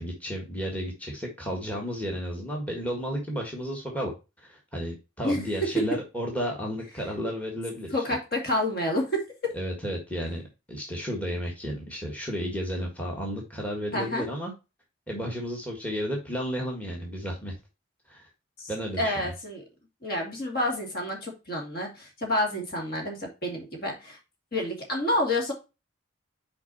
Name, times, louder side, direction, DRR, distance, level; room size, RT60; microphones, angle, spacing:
voice 1, 0.0-4.1 4.4-7.9 9.5-10.4 10.7-14.5 15.1-17.5 18.1-18.3 18.7-19.3, equal, 5° left, 0 dB, 1.6 m, -32 dB
voice 2, 7.9-9.6 13.9-14.2 18.6-18.7 19.0-19.6 20.0-24.2 24.5-25.5, left 1 dB, 50° left, 1 dB, 2.4 m, -29 dB
6.1 x 4.8 x 4.2 m, 0.27 s
head